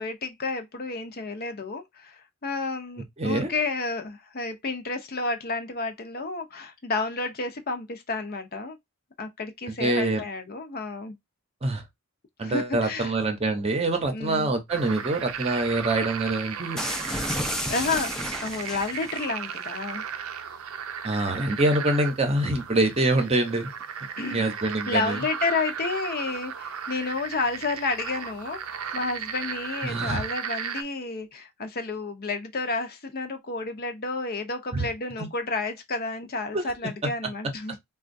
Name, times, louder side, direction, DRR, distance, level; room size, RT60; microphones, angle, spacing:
voice 1, 0.0-8.8 9.2-11.2 12.4-13.1 14.1-14.5 17.5-18.1 18.4-20.0 24.2-24.4 24.9-37.8, left 3 dB, 45° left, 0.7 m, -31 dB
voice 2, 3.2-3.5 9.8-10.2 11.6-11.8 12.4-16.8 21.0-23.7 24.3-25.2 29.8-30.2 34.7-34.9 35.2-35.3 36.5-36.6, right 2 dB, 30° right, 0.8 m, -25 dB
sound 1, 14.7-30.8, right 7 dB, 70° right, 0.5 m, -35 dB
sound 2, 16.8-19.2, left 1 dB, ahead, 0.5 m, -31 dB
4.2 x 2.3 x 2.6 m
head